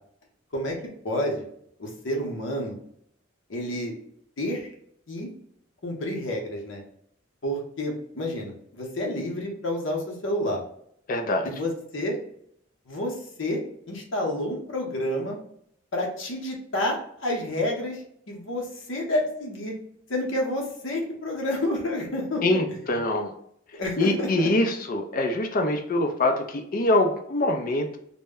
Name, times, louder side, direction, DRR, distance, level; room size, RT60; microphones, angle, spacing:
voice 1, 1.0-1.5 1.8-2.8 3.5-3.9 4.4-4.7 5.1-5.3 5.8-6.8 7.4-10.6 11.4-12.2 12.9-13.6 13.9-15.4 15.9-18.0 18.3-19.7 20.1-22.6 23.8-24.5, left 1 dB, 80° left, 0 dB, 0.8 m, -29 dB
voice 2, 11.1-11.5 22.4-23.3 24.0-28.0, left 1 dB, 45° left, 4 dB, 0.4 m, -24 dB
2.1 x 2.1 x 3.5 m, 0.69 s
head